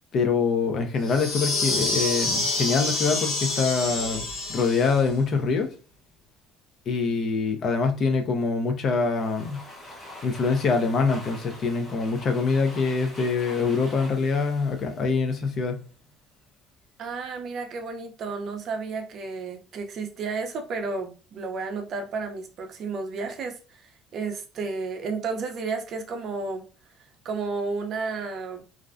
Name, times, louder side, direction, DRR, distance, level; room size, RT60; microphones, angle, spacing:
voice 1, 0.1-5.7 6.9-9.6 10.2-15.8, left 4 dB, 45° left, 0.4 m, -24 dB
sound 1, 1.0-5.1, left 3 dB, 90° left, 0.9 m, -27 dB
Domestic sounds home sounds, 8.9-15.8, left 1 dB, 10° left, 0.9 m, -45 dB
voice 2, 17.0-26.6 27.2-28.6, right 4 dB, 50° right, 0.5 m, -32 dB
2.4 x 2.1 x 2.4 m
cardioid pair, 135°, 0 cm